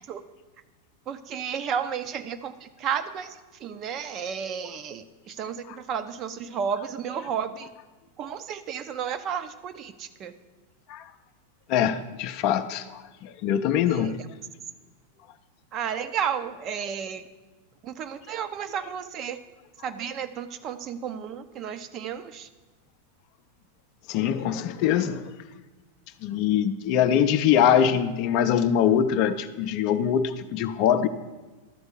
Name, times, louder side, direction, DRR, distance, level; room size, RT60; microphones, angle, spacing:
voice 1, 1.1-2.5 2.8-3.3 3.6-7.7 8.2-10.3 13.9-14.1 15.7-17.2 17.8-19.4 19.8-22.5, right 7 dB, 35° right, 10 dB, 0.5 m, -32 dB
voice 2, 11.7-14.2 24.1-25.3 26.2-31.1, left 9 dB, 45° left, 10 dB, 0.5 m, -23 dB
12.0 x 4.4 x 6.5 m, 1.2 s
figure-of-eight pair, 90°, 0 cm